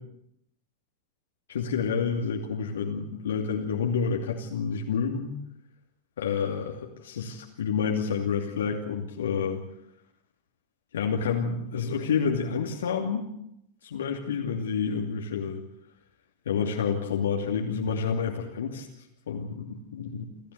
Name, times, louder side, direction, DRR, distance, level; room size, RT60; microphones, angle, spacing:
voice 1, 1.5-5.3 6.2-9.6 10.9-13.3 13.8-15.6 16.5-18.9 19.3-20.3, left 6 dB, 65° left, 0 dB, 2.7 m, -29 dB
29.5 x 14.0 x 8.5 m, 0.79 s
figure-of-eight pair, 90°, 0 cm